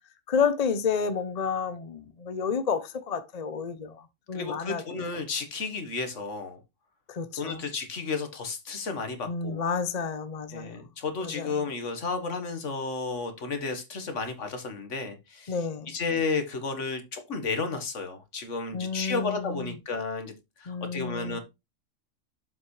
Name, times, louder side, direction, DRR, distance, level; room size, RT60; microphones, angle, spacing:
voice 1, 0.3-4.8 7.1-7.6 9.3-10.8 11.2-11.7 15.5-15.9 18.7-19.8 20.7-21.4, left 6 dB, 40° left, 0.7 m, -30 dB
voice 2, 4.3-6.6 7.4-9.6 10.5-15.6 15.9-21.4, left 4 dB, 70° left, 1.7 m, -32 dB
7.4 x 6.0 x 3.2 m
omnidirectional pair, 1.3 m